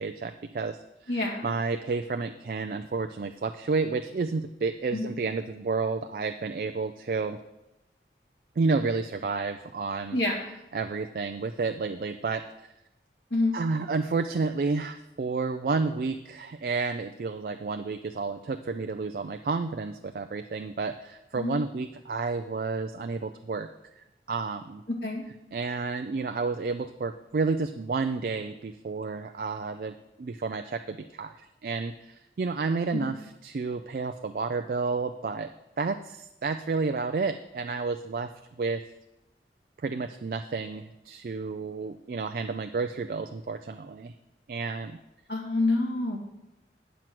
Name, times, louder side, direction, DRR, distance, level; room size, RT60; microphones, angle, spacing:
voice 1, 0.0-7.4 8.6-10.2 10.7-12.4 13.5-23.7 24.3-24.8 25.5-35.5 35.8-38.3 38.6-38.8 39.8-44.1 44.5-45.0, right 4 dB, 55° right, 7 dB, 0.4 m, -31 dB
voice 2, 1.1-1.5 4.9-5.2 10.1-10.4 13.3-13.6 21.4-21.6 24.9-25.2 32.9-33.1 45.3-46.2, left 2 dB, 75° left, -1 dB, 1.9 m, -27 dB
9.1 x 6.1 x 5.9 m, 0.93 s
head